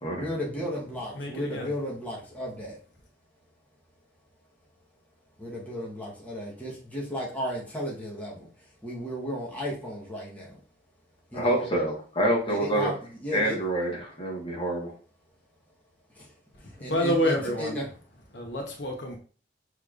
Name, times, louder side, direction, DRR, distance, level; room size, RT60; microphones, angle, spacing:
voice 1, 0.1-2.8 5.4-8.5 8.8-10.6 11.3-11.7 12.5-13.0 13.2-13.6 16.1-16.3 16.6-17.8, equal, 10° left, 1.1 m, -34 dB
voice 2, 1.1-1.7 16.5-17.8 18.3-19.2, equal, 65° left, 1.0 m, -28 dB
voice 3, 11.3-12.9 13.3-14.9, right 1 dB, 30° left, 1.4 m, -27 dB
6.6 x 3.2 x 2.5 m
head